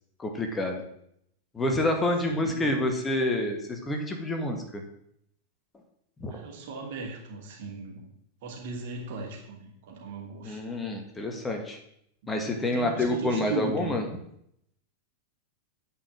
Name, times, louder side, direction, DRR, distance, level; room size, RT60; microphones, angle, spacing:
voice 1, 0.2-0.8 1.5-4.8 6.2-6.3 10.4-11.8 12.3-14.1, left 1 dB, 15° left, 3 dB, 1.7 m, -28 dB
voice 2, 2.4-2.7 6.3-8.0 8.4-10.6 12.2-12.3 12.6-14.0, right 4 dB, 55° right, 0 dB, 2.8 m, -37 dB
9.6 x 5.4 x 7.7 m, 0.74 s
figure-of-eight pair, 90°, 0 cm